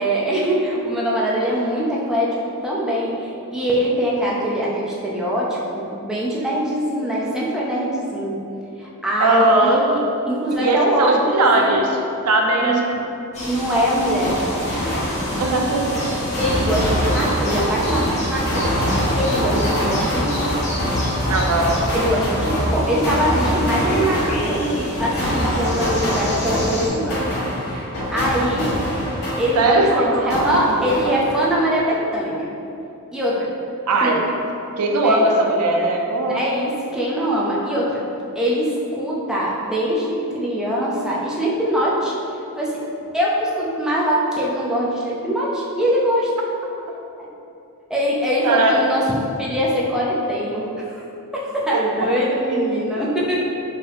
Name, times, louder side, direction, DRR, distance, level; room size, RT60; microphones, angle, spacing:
voice 1, 0.0-8.4 8.8-10.0 10.3-11.8 12.6-13.0 13.5-14.4 14.9-15.1 16.4-18.9 19.2-20.6 21.4-21.5 21.9-27.2 27.7-28.7 29.4-32.5 33.1-33.5 34.0-34.3 35.0-35.3 36.3-38.0 38.3-42.1 42.5-42.8 43.1-46.3 47.2-47.3 47.9-49.0 49.4-51.0 51.3-53.4, equal, 5° right, -6 dB, 0.5 m, -23 dB
voice 2, 9.2-9.8 10.6-12.0 12.2-12.8 15.4-16.0 21.3-21.7 29.5-31.2 33.9-34.2 34.8-36.4 48.4-49.0 51.7-51.8 52.5-52.7, right 2 dB, 90° right, 1 dB, 0.5 m, -19 dB
sound 1, 13.3-26.9, left 1 dB, 30° left, 1.0 m, -30 dB
sound 2, 14.2-29.9 30.3-31.6, equal, 45° left, 1.5 m, -24 dB
4.7 x 2.8 x 3.4 m, 2.8 s
head